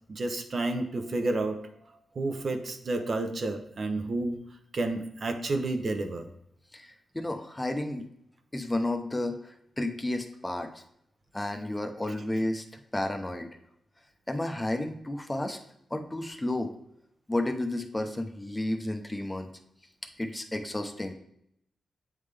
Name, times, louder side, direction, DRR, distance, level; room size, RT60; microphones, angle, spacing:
voice 1, 0.2-1.6 2.2-4.3 4.7-6.3, right 2 dB, 50° right, 6 dB, 0.7 m, -30 dB
voice 2, 6.7-8.1 8.5-10.8 11.3-12.6 12.9-13.5 14.3-15.6 15.9-16.7 17.3-19.5 20.2-21.1, left 1 dB, 15° left, 5 dB, 0.6 m, -32 dB
8.1 x 3.6 x 3.3 m, 0.74 s
cardioid pair, 100°, 0 cm